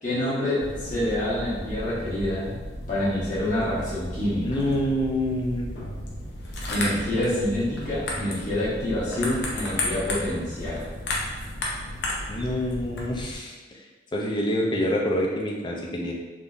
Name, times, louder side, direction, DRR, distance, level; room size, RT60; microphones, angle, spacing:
voice 1, 0.0-2.5 2.9-4.7 6.7-10.8, left 1 dB, 45° left, -9 dB, 1.1 m, -27 dB
sound 1, 0.6-13.4, left 1 dB, 65° left, 0.6 m, -34 dB
voice 2, 4.4-5.7 12.3-13.8 14.1-16.1, left 1 dB, 25° left, -1 dB, 0.4 m, -27 dB
3.5 x 2.6 x 2.4 m, 1.3 s
head